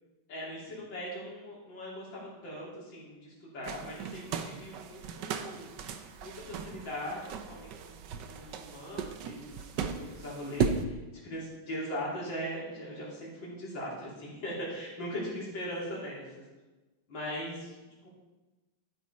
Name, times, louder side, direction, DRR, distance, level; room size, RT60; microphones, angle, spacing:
voice 1, 0.3-5.7 6.2-11.0 11.2-16.2 17.1-17.7 18.0-18.1, equal, 65° left, -5 dB, 3.9 m, -40 dB
sound 1, 3.6-10.8, right 6 dB, 65° right, 1.3 m, -36 dB
13.5 x 9.7 x 4.2 m, 1.1 s
omnidirectional pair, 2.2 m